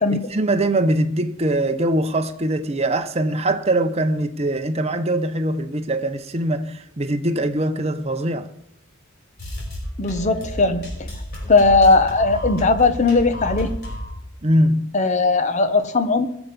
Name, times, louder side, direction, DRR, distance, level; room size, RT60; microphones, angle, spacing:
voice 1, 0.1-8.5 14.4-15.0, right 1 dB, 30° right, 0.8 m, -22 dB
sound 1, 9.4-14.2, left 1 dB, 50° left, 5.2 m, -31 dB
voice 2, 10.0-11.1 11.5-13.8 14.9-16.3, left 3 dB, 35° left, 1.0 m, -18 dB
20.5 x 7.1 x 5.3 m
head